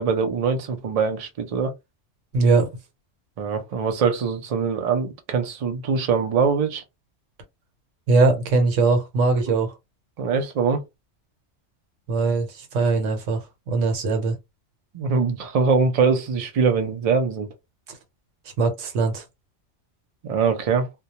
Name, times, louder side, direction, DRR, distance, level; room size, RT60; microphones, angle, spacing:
voice 1, 0.0-1.7 3.4-6.8 10.2-10.8 14.9-17.5 20.2-20.9, right 5 dB, 50° right, 0.4 m, -23 dB
voice 2, 2.3-2.7 8.1-9.7 12.1-14.4 18.6-19.2, right 3 dB, 80° right, 1.1 m, -21 dB
2.3 x 2.1 x 2.7 m
omnidirectional pair, 1.3 m